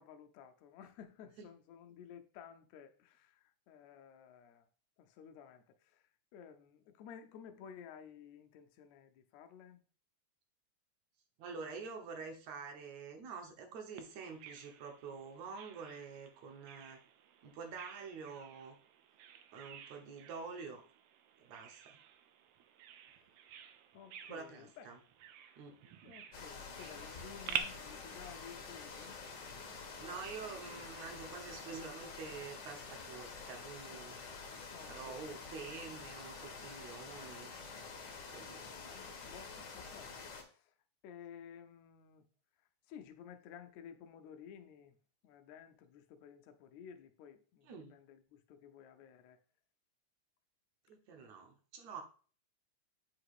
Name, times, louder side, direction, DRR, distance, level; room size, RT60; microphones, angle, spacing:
voice 1, 0.0-4.7 5.0-9.8 23.2-23.3 23.9-24.9 25.8-29.2 34.7-35.4 38.6-40.7 41.0-42.3 42.9-45.0 45.2-49.4, left 8 dB, 75° left, 1.8 m, -54 dB
voice 2, 11.4-17.0 17.4-18.7 19.5-20.8 21.4-22.0 24.3-25.0 25.6-25.8 30.0-34.2 34.9-37.5 38.3-38.6 47.6-48.0 50.9-52.0, right 5 dB, 70° right, 2.2 m, -47 dB
Bird vocalization bird call bird song, 14.0-27.6, right 10 dB, 90° right, 1.3 m, -49 dB
sound 1, 26.3-40.4, left 4 dB, 60° left, 1.2 m, -48 dB
8.4 x 2.9 x 4.8 m
omnidirectional pair, 3.5 m